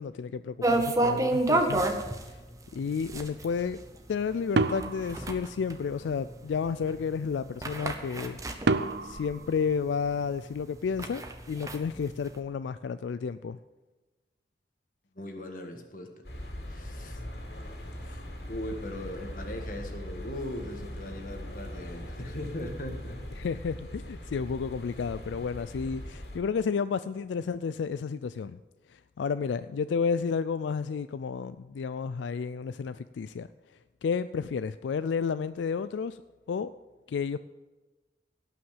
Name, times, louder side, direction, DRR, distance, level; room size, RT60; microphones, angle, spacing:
voice 1, 0.0-2.0 2.2-2.4 2.7-3.8 4.1-8.4 9.0-13.6 23.4-28.6 28.9-33.5 34.0-36.2 36.5-36.7 37.1-37.4, left 6 dB, 85° left, 13 dB, 0.3 m, -31 dB
sound 1, 0.6-9.7 10.1-10.2 10.6-12.4, right 2 dB, 20° right, 0.9 m, -30 dB
sound 2, 4.6-6.1 8.7-10.5, right 3 dB, 70° right, 0.6 m, -30 dB
voice 2, 15.1-16.2 16.7-17.2 18.0-23.2, left 1 dB, 50° left, 4 dB, 1.6 m, -39 dB
sound 3, 16.2-26.4, equal, 65° left, 2.7 m, -41 dB
17.5 x 5.8 x 7.3 m, 1.2 s
head